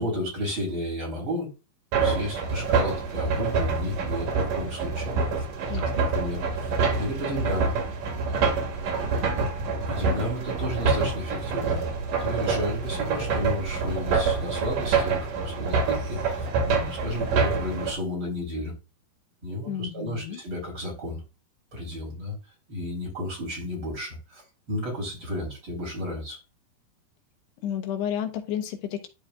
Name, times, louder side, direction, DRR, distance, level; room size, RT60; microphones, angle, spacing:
voice 1, 0.0-1.5 2.0-5.5 5.7-7.7 9.1-18.7 19.4-21.2 21.7-22.4 22.7-24.4 24.7-26.4, left 1 dB, 30° right, -3 dB, 4.2 m, -33 dB
sound 1, 1.9-17.9, right 4 dB, 55° right, 3.4 m, -26 dB
voice 2, 5.7-6.1 19.7-20.4 27.6-29.1, left 9 dB, 90° left, 6 dB, 3.2 m, -31 dB
12.0 x 4.8 x 2.4 m, 0.29 s
omnidirectional pair, 4.6 m